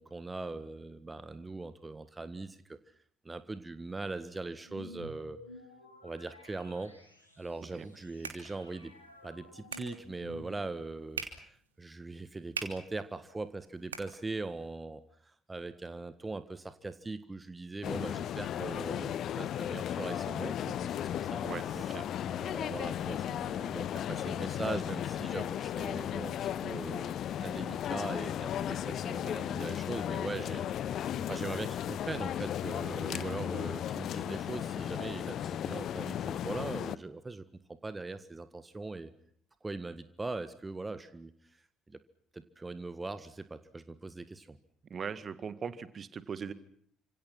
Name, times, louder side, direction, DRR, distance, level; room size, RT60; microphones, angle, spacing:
voice 1, 0.0-2.8 3.2-5.4 6.0-6.9 7.4-8.9 9.2-21.4 21.7-21.8 22.2-26.3 26.6-31.0 31.3-39.1 39.6-42.0 42.3-44.6, right 3 dB, 20° right, 13 dB, 1.6 m, -41 dB
sound 1, 4.6-10.9, left 2 dB, 90° left, 3.4 m, -53 dB
sound 2, 7.7-14.7, right 5 dB, 80° right, 3.0 m, -46 dB
sound 3, 17.8-37.0, left 10 dB, 50° left, 1.0 m, -35 dB
voice 2, 21.4-22.1 33.1-33.4 44.9-46.5, right 6 dB, 40° right, 14 dB, 1.9 m, -40 dB
29.5 x 26.5 x 5.9 m, 0.63 s
figure-of-eight pair, 50°, 0 cm